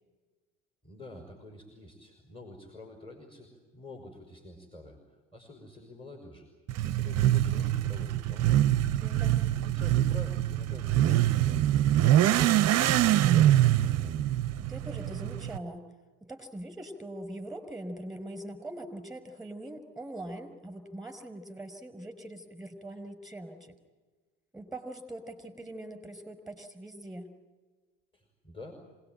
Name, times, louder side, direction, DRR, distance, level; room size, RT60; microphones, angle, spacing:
voice 1, 0.8-5.0 5.3-6.5 6.8-8.6 9.6-14.2 28.1-28.7, left 2 dB, 15° left, 3 dB, 5.2 m, -48 dB
Motorcycle / Accelerating revving vroom, 6.7-15.6, right 13 dB, 45° right, 0.8 m, -24 dB
voice 2, 9.0-9.4 14.6-15.9 16.2-23.7 24.5-27.3, right 1 dB, ahead, 8 dB, 5.4 m, -42 dB
26.5 x 19.0 x 9.2 m, 1.3 s
hypercardioid pair, 65°, 35 cm